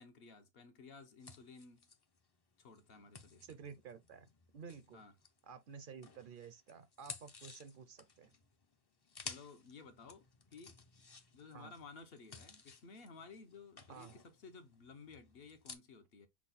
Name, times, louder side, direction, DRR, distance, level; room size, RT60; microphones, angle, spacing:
voice 1, 0.0-1.9 2.6-3.6 4.9-5.1 9.2-10.8 11.3-16.3, left 4 dB, 70° left, 1.0 m, -55 dB
sound 1, 1.2-5.6 6.0-15.7, left 4 dB, 35° left, 0.4 m, -55 dB
voice 2, 3.4-5.0 5.4-8.3 11.5-11.7 13.9-14.1, right 6 dB, 60° right, 0.7 m, -52 dB
5.9 x 2.2 x 3.9 m
omnidirectional pair, 1.1 m